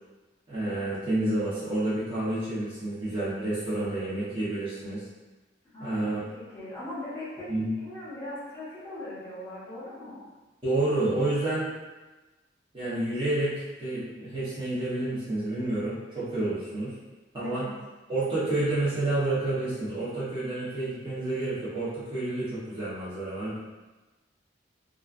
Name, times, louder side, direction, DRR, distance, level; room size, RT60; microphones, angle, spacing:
voice 1, 0.5-5.0 5.8-6.2 7.5-7.7 10.6-11.7 12.7-16.9 17.3-17.6 18.1-23.6, right 2 dB, 30° right, -12 dB, 0.7 m, -29 dB
voice 2, 5.7-7.5 7.8-10.2 17.4-17.8, left 1 dB, 10° left, -12 dB, 1.0 m, -40 dB
2.3 x 2.3 x 2.3 m, 1.2 s
head